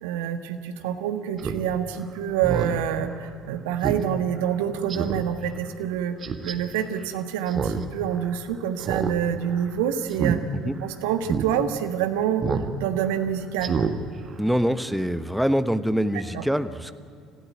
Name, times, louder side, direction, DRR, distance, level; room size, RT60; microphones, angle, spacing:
voice 1, 0.0-6.2 6.4-12.4 12.8-13.7 16.3-16.4, right 9 dB, 65° right, 9 dB, 1.5 m, -27 dB
Speech synthesizer, 1.4-1.6 2.0-2.1 2.4-2.8 3.2-3.3 3.8-4.0 4.4-4.5 4.9-5.2 6.2-6.5 7.5-7.8 8.1-8.2 8.8-9.1 9.4-9.7 10.1-10.4 10.8-10.9 11.3-11.5 12.4-12.7 13.0-13.2 13.6-13.9 14.3-14.4, right 6 dB, 40° right, 1.7 m, -27 dB
voice 2, 14.4-16.9, equal, ahead, 12 dB, 1.2 m, -24 dB
26.5 x 15.5 x 9.2 m, 2.3 s
figure-of-eight pair, 55°, 0 cm